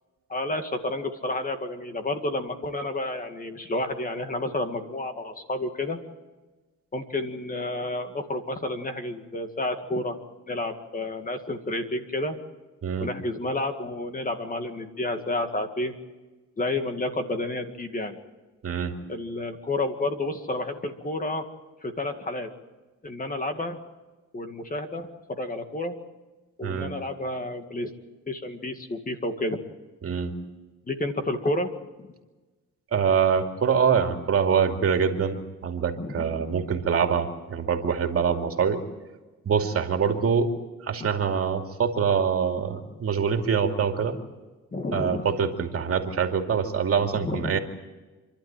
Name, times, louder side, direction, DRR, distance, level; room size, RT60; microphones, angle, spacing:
voice 1, 0.3-6.0 6.9-10.2 10.5-12.4 13.0-16.0 16.6-18.2 19.1-21.4 21.8-22.5 23.0-23.8 24.3-26.0 26.6-27.9 28.3-29.6 30.9-31.7 32.0-32.1 36.0-36.4 44.7-45.3 47.2-47.6, left 2 dB, 30° left, 6 dB, 2.1 m, -30 dB
voice 2, 18.6-18.9 26.6-26.9 30.0-30.4 32.9-38.8 39.4-40.5 40.8-44.2 44.9-47.6, right 6 dB, 50° right, 4 dB, 2.6 m, -24 dB
28.0 x 12.0 x 9.1 m, 1.2 s
cardioid pair, 90°, 30 cm